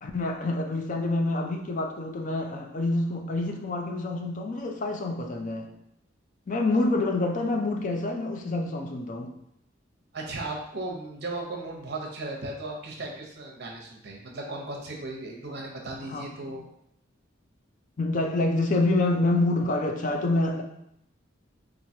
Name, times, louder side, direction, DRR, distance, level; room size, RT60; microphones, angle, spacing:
voice 1, 0.0-5.7 6.5-9.3 16.1-16.5 18.0-20.6, left 2 dB, 40° left, 3 dB, 0.4 m, -27 dB
voice 2, 10.1-16.7, right 2 dB, 55° right, 0 dB, 0.7 m, -36 dB
4.5 x 2.4 x 2.7 m, 0.77 s
head